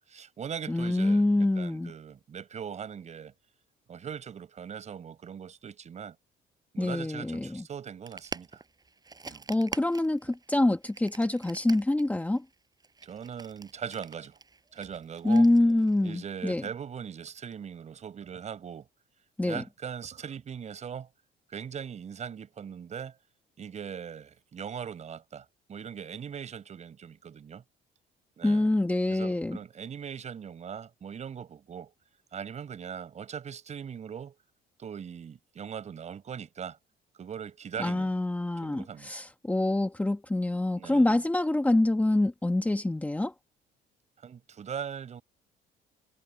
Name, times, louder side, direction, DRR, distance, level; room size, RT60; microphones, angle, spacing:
voice 1, 0.1-3.3 3.9-6.2 6.7-8.6 9.2-9.4 13.0-14.4 14.7-15.5 16.0-18.9 19.4-21.1 21.5-23.1 23.6-27.6 28.4-28.7 29.1-31.9 32.3-34.4 34.8-36.8 37.2-38.1 38.6-39.2 40.8-41.2 44.2-45.2, right 7 dB, 45° right, 5.7 m, -40 dB
voice 2, 0.7-1.9 6.8-7.6 9.5-12.4 15.2-16.6 19.4-19.6 28.4-29.6 37.8-43.3, left 2 dB, 10° left, 1.5 m, -26 dB
sound 1, 8.1-16.3, right 4 dB, 25° right, 4.9 m, -45 dB
cardioid pair, 110°, 17 cm